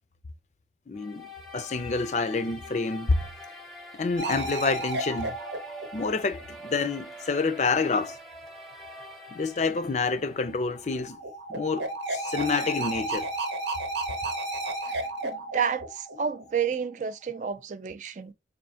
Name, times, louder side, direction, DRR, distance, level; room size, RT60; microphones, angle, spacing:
voice 1, 0.9-3.2 3.9-5.3 5.9-8.2 9.3-11.2 11.5-13.3, left 4 dB, 40° left, 0.4 m, -28 dB
sound 1, 1.0-10.9, equal, ahead, 0.6 m, -45 dB
sound 2, 4.2-6.8 10.3-16.8, right 2 dB, 90° right, 0.9 m, -33 dB
voice 2, 14.9-18.3, right 7 dB, 45° right, 0.3 m, -31 dB
4.3 x 2.6 x 2.7 m
head